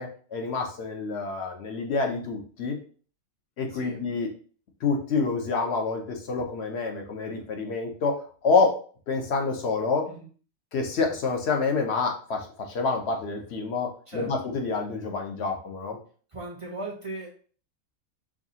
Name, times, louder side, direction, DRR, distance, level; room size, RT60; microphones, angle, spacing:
voice 1, 0.0-2.8 3.6-4.3 4.8-8.2 8.4-8.7 9.1-10.1 10.7-16.0, left 4 dB, 60° left, 3 dB, 0.9 m, -27 dB
voice 2, 3.7-4.0 10.1-10.3 14.1-14.3 16.3-17.3, right 2 dB, 30° right, -2 dB, 0.6 m, -38 dB
4.8 x 2.3 x 2.7 m, 0.42 s
omnidirectional pair, 1.4 m